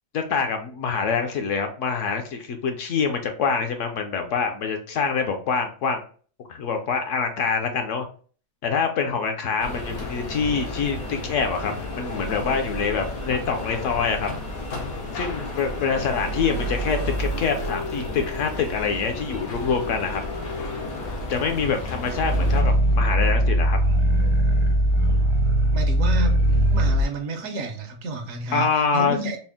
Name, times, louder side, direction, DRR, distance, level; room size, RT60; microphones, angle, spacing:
voice 1, 0.1-6.0 6.5-8.1 8.6-14.3 15.1-20.2 21.3-23.8 28.5-29.2, left 5 dB, 65° left, 0.9 m, -25 dB
sound 1, 9.6-22.6, left 1 dB, 85° left, 1.3 m, -31 dB
Growling, 22.1-27.1, right 1 dB, 50° right, 0.3 m, -20 dB
voice 2, 25.7-26.4 26.7-29.4, right 2 dB, 70° right, 1.1 m, -30 dB
4.3 x 2.0 x 3.5 m
omnidirectional pair, 1.5 m